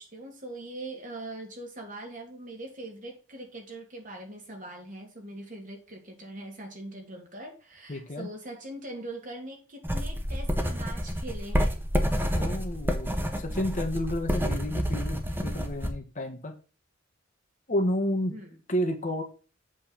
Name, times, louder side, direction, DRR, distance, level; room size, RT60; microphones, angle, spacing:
voice 1, 0.0-11.8 18.3-18.6, right 1 dB, 40° right, 1 dB, 2.8 m, -42 dB
voice 2, 7.9-8.3 12.3-16.6 17.7-18.3 18.7-19.2, equal, 40° left, 4 dB, 1.5 m, -31 dB
sound 1, 9.8-15.9, equal, 10° right, 1.3 m, -28 dB
8.4 x 4.3 x 5.6 m, 0.33 s
head